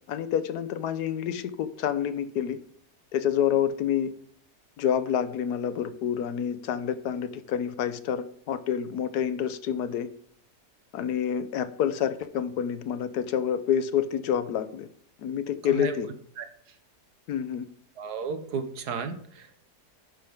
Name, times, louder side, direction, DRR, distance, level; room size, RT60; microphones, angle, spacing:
voice 1, 0.1-2.6 3.1-4.1 4.8-10.1 10.9-14.9 15.2-16.1 17.3-17.7, left 9 dB, 80° left, 1.3 m, -28 dB
voice 2, 15.6-15.9 16.4-16.5 18.0-19.6, right 5 dB, 80° right, 1.7 m, -33 dB
11.5 x 9.9 x 3.6 m
omnidirectional pair, 1.7 m